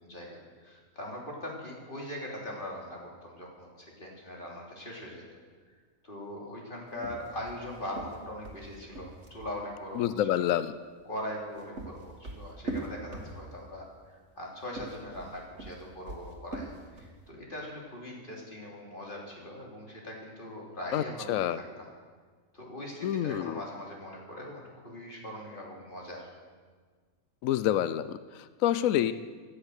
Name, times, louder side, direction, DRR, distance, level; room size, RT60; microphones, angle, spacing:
voice 1, 0.0-5.2 6.0-10.5 11.0-21.6 22.5-26.3, left 1 dB, 40° left, -2 dB, 3.4 m, -41 dB
sound 1, 6.9-9.6 11.3-13.7 14.6-17.2, right 2 dB, 55° right, 2.1 m, -41 dB
voice 2, 9.9-10.7 20.9-21.6 23.0-23.6 27.4-29.1, left 11 dB, 80° left, 13 dB, 1.0 m, -28 dB
17.0 x 11.5 x 6.5 m, 1.5 s
omnidirectional pair, 1.4 m